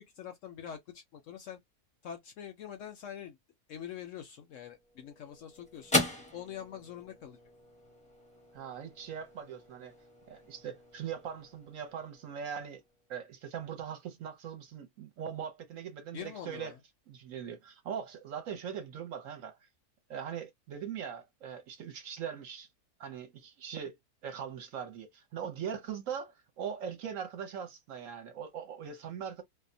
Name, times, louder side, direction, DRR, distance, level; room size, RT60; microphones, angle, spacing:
voice 1, 0.0-1.6 2.0-3.4 3.7-6.0 6.3-7.4 16.1-16.8, left 9 dB, 65° left, 0.8 m, -44 dB
sound 1, 4.6-13.2, left 1 dB, 10° left, 0.4 m, -39 dB
voice 2, 8.5-9.9 10.3-12.8 13.1-16.7 17.1-19.6 20.1-22.7 23.0-24.0 24.2-29.4, right 8 dB, 65° right, 1.0 m, -41 dB
2.7 x 2.1 x 2.5 m
omnidirectional pair, 1.7 m